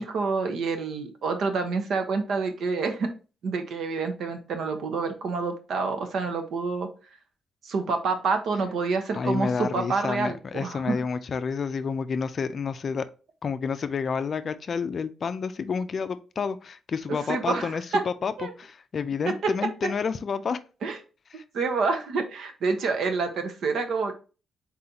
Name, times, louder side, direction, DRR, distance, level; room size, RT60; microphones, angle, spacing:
voice 1, 0.0-3.1 3.4-6.9 7.6-11.0 17.3-18.0 18.4-18.5 19.8-19.9 20.8-21.0 21.5-24.1, right 4 dB, 70° right, 0.9 m, -28 dB
voice 2, 9.1-13.0 13.4-20.6 21.3-21.4, left 5 dB, 45° left, 0.4 m, -29 dB
4.2 x 3.9 x 2.8 m
cardioid pair, 130°, 0 cm